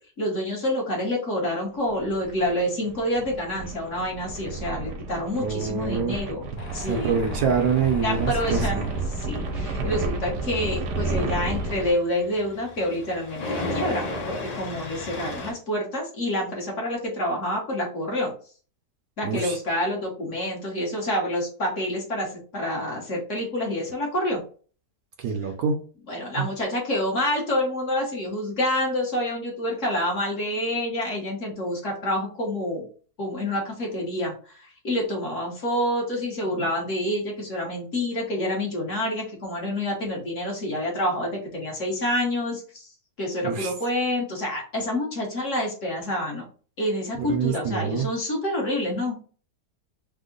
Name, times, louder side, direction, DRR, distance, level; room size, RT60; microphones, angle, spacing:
voice 1, 0.2-7.1 8.0-18.3 19.2-24.4 26.1-32.9 33.2-42.9 43.2-46.4 46.8-49.2, left 1 dB, 50° left, -1 dB, 1.2 m, -28 dB
sound 1, 1.9-11.9, right 3 dB, 85° right, 1.4 m, -31 dB
voice 2, 5.4-6.1 6.9-8.9 19.2-19.6 25.2-25.8 26.4-26.5 43.4-43.7 47.2-48.1, right 6 dB, 70° right, 4 dB, 1.0 m, -25 dB
Tools, 6.6-15.5, left 2 dB, 85° left, 0.3 m, -36 dB
3.5 x 2.0 x 3.7 m, 0.40 s
omnidirectional pair, 1.8 m